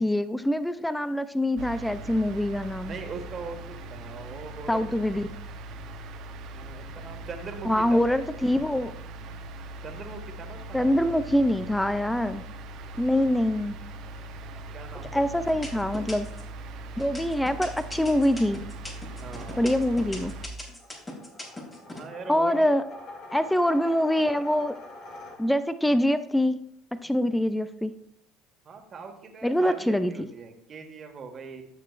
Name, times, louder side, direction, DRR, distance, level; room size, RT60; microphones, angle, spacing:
voice 1, 0.0-3.0 4.7-5.3 7.7-8.9 10.7-12.4 13.0-13.8 15.1-16.3 17.0-18.6 19.6-20.3 22.3-22.8 23.3-24.7 25.4-26.6 27.0-27.9 29.4-30.3, left 1 dB, 5° left, 13 dB, 0.4 m, -24 dB
sound 1, 1.6-20.5, right 2 dB, 60° right, 1.0 m, -40 dB
voice 2, 2.8-5.0 6.5-8.5 9.8-11.1 14.7-15.2 19.2-19.8 21.9-22.7 28.6-31.6, right 4 dB, 40° right, 4 dB, 1.7 m, -41 dB
sound 2, 14.6-15.0 15.5-16.5 17.0-22.0, left 1 dB, 20° left, 2.8 m, -40 dB
sound 3, 17.7-25.8, left 2 dB, 55° left, 2.0 m, -47 dB
12.0 x 6.7 x 2.5 m, 0.69 s
supercardioid pair, 85°, 0 cm